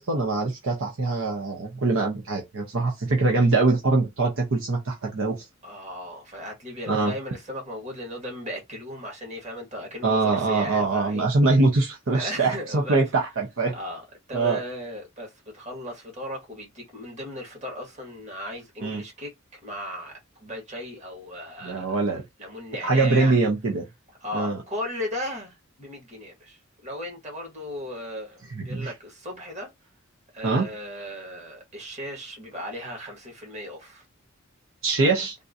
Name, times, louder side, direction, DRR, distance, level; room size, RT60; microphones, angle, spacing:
voice 1, 0.0-5.4 6.9-7.1 10.0-13.7 14.3-14.6 18.8-19.0 21.6-22.2 22.8-23.9 24.3-24.6 28.5-28.9 30.4-30.7 34.8-35.3, right 3 dB, 65° right, 0.8 m, -23 dB
voice 2, 5.6-11.2 12.1-13.0 13.7-23.4 24.2-29.7 30.3-34.0 35.0-35.3, left 1 dB, 35° right, 1.7 m, -37 dB
3.6 x 2.6 x 2.6 m
head